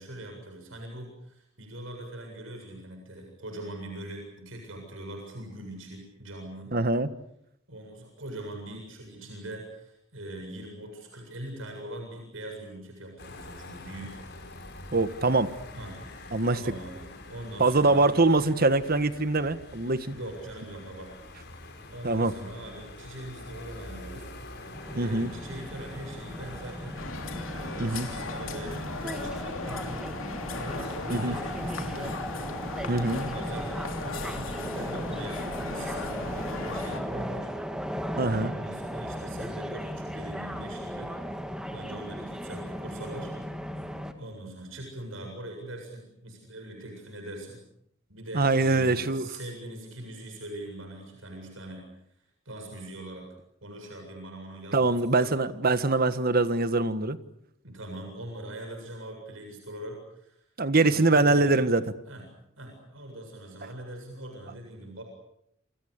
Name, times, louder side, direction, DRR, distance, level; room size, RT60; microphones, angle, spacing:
voice 1, 0.0-6.7 7.7-14.2 15.7-16.0 16.5-18.3 20.1-21.1 21.6-24.7 24.9-27.0 27.4-32.2 33.1-35.4 35.7-37.5 38.3-41.1 41.7-43.3 44.1-47.6 48.1-51.9 52.5-53.3 53.6-55.4 57.6-60.4 60.7-61.7 62.0-62.3 62.6-65.0, right 1 dB, 75° right, 3 dB, 7.6 m, -42 dB
voice 2, 6.7-7.1 14.9-15.5 16.3-16.6 17.6-20.1 22.0-22.3 25.0-25.3 27.8-28.1 31.1-31.3 32.9-33.2 38.2-38.5 48.3-49.3 54.7-57.2 60.6-61.8, right 2 dB, 50° right, 12 dB, 1.5 m, -23 dB
sound 1, 13.2-30.0, left 2 dB, 60° left, 6.0 m, -46 dB
sound 2, 24.7-44.1, equal, 5° right, 2.0 m, -36 dB
sound 3, 27.0-37.0, left 3 dB, 85° left, 3.1 m, -37 dB
29.0 x 27.0 x 6.7 m, 0.74 s
head